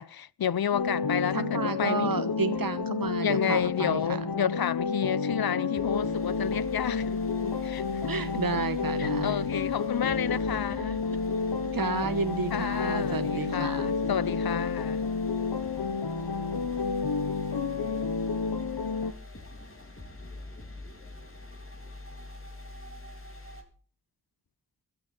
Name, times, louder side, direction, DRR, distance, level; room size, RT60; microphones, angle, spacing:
voice 1, 0.0-2.4 3.2-8.0 9.0-11.0 12.5-15.0, left 9 dB, 70° left, 0.6 m, -31 dB
sound 1, 0.7-19.1, left 5 dB, 85° left, 1.1 m, -30 dB
voice 2, 1.3-4.2 8.1-9.4 10.7-11.0 11.7-13.9, right 4 dB, 60° right, 1.2 m, -32 dB
sound 2, 5.7-23.6, left 2 dB, 35° left, 3.3 m, -44 dB
15.5 x 12.5 x 4.4 m
wide cardioid pair, 50°, 38 cm